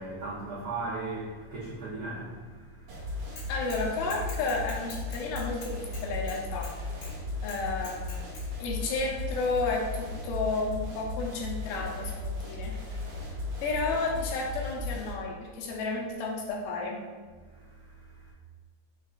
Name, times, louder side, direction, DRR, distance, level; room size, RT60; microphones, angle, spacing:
voice 1, 0.0-3.5 7.3-7.5 13.2-13.6 17.5-18.3, right 3 dB, 90° right, -8 dB, 1.3 m, -39 dB
sound 1, 2.9-15.1, left 2 dB, 65° right, 1.8 m, -36 dB
Bicycle / Mechanisms, 3.4-3.8 4.1-6.7 7.0-7.1 7.5-8.4, left 3 dB, 60° left, 2.7 m, -45 dB
voice 2, 3.5-6.7 7.4-8.2 8.6-12.7 13.6-17.0, left 3 dB, 80° left, -1 dB, 2.3 m, -32 dB
5.8 x 2.4 x 3.7 m, 1.5 s
omnidirectional pair, 3.9 m